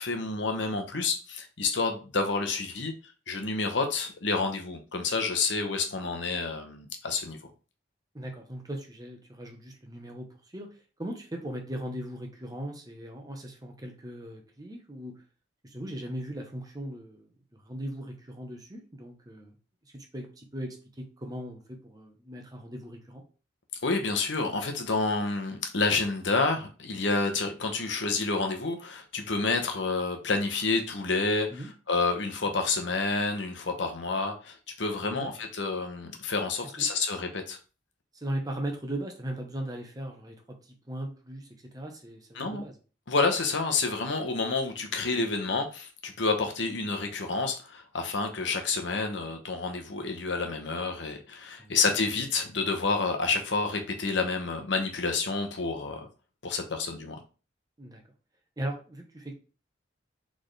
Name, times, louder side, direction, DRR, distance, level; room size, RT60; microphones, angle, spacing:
voice 1, 0.0-2.9 3.3-7.4 23.8-37.6 42.3-42.6 43.1-56.1 56.4-57.2, left 3 dB, 70° left, 4 dB, 0.9 m, -29 dB
voice 2, 8.1-10.7 11.0-15.2 15.6-19.6 19.9-23.2 31.5-31.7 35.0-35.3 36.8-36.9 38.1-42.7 51.6-51.7 57.8-58.0 58.6-59.4, right 1 dB, 20° right, 3 dB, 0.9 m, -38 dB
4.3 x 3.7 x 3.2 m, 0.34 s
head